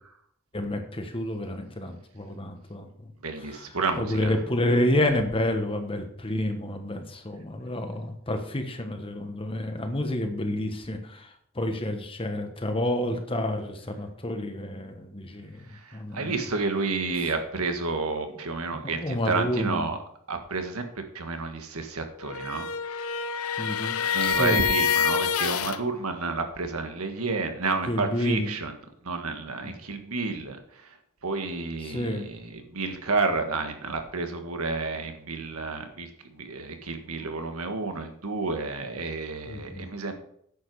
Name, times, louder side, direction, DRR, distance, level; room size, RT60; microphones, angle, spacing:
voice 1, 0.5-2.9 3.4-3.7 4.0-15.6 15.9-16.4 18.7-19.9 23.6-24.6 27.9-28.5 29.6-29.8 31.8-32.3 39.5-39.9, left 1 dB, 25° left, 6 dB, 1.3 m, -29 dB
voice 2, 3.2-4.3 15.8-20.0 20.3-22.7 24.1-28.7 29.0-30.6 31.2-40.2, right 3 dB, 85° right, 6 dB, 1.6 m, -30 dB
sound 1, 22.2-25.8, left 7 dB, 75° left, 0.7 m, -26 dB
10.0 x 7.8 x 4.8 m, 0.67 s
head